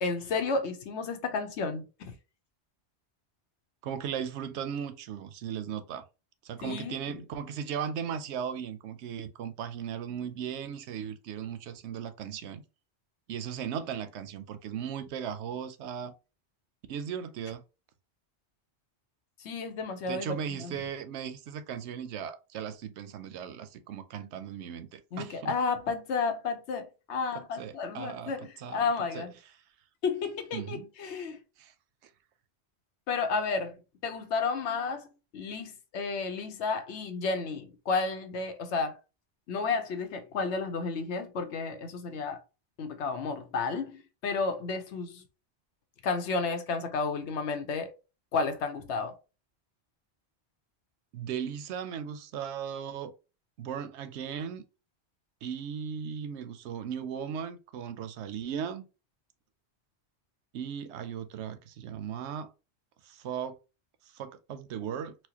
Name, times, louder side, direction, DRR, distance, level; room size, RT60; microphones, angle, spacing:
voice 1, 0.0-2.1 6.6-7.0 19.4-20.7 25.1-29.3 30.0-31.4 33.1-33.7 34.0-35.1 35.3-39.0 39.5-42.4 42.8-45.2 46.0-47.9 48.3-49.1, left 4 dB, 90° left, 1.0 m, -32 dB
voice 2, 3.8-6.0 6.4-12.6 13.3-16.1 16.9-17.6 20.1-25.5 27.3-28.9 29.1-29.2 30.5-30.9 31.6-31.7 51.1-53.1 53.6-54.6 55.4-58.8 60.5-62.5 63.0-63.6 64.1-65.2, right 8 dB, 85° right, 0.9 m, -37 dB
4.3 x 2.2 x 2.8 m
omnidirectional pair, 1.1 m